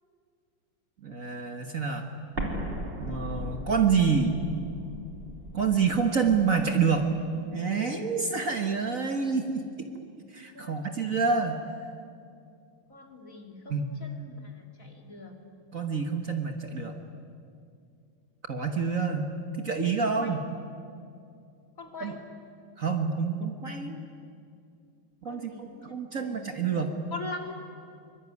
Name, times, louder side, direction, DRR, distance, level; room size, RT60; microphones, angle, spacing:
voice 1, 1.0-2.1 3.0-4.4 5.5-7.1 7.5-9.9 10.3-11.6 13.7-14.0 15.7-16.9 18.5-19.3 19.6-20.4 22.0-22.2 22.8-24.0 25.2-27.1, right 5 dB, 45° right, 5 dB, 1.7 m, -27 dB
Explosion, 2.4-7.1, equal, 30° right, 3.3 m, -38 dB
voice 2, 10.5-11.2 12.9-15.3 20.2-20.4 21.8-22.2 25.3-25.9 26.2-26.4 27.1-27.6, left 3 dB, 40° left, 2 dB, 3.2 m, -42 dB
24.5 x 24.5 x 9.6 m, 2.4 s
omnidirectional pair, 2.2 m